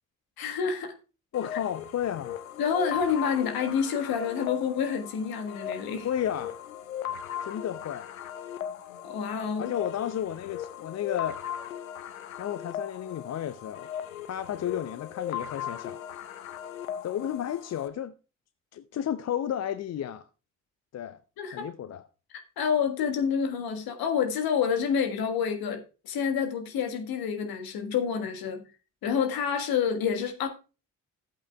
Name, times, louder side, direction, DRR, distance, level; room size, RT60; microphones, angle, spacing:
voice 1, 0.4-0.9 2.6-6.1 9.0-9.7 21.4-21.7 22.3-28.6 29.0-30.5, left 7 dB, 60° left, 1.6 m, -28 dB
sound 1, 1.3-17.9, left 9 dB, 90° left, 0.5 m, -38 dB
voice 2, 1.3-2.4 6.0-6.6 7.4-8.1 9.6-11.4 12.4-13.9 14.3-16.0 17.0-18.1 18.7-20.2 20.9-21.2 21.5-22.0, left 10 dB, 40° left, 0.6 m, -32 dB
14.0 x 8.2 x 2.3 m
figure-of-eight pair, 40°, 40 cm